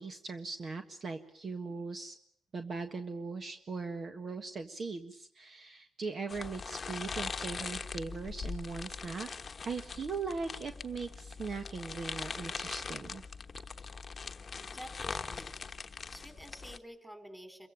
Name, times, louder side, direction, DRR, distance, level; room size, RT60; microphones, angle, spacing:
voice 1, 0.0-2.1 2.5-9.3 9.6-13.2, right 4 dB, 45° right, 6 dB, 1.5 m, -39 dB
Rope Tightening, 6.3-16.8, left 5 dB, 35° left, 1.1 m, -41 dB
voice 2, 14.7-15.7 16.1-17.7, equal, 5° right, 8 dB, 4.3 m, -49 dB
27.5 x 16.0 x 9.1 m, 0.69 s
cardioid pair, 90°, 0 cm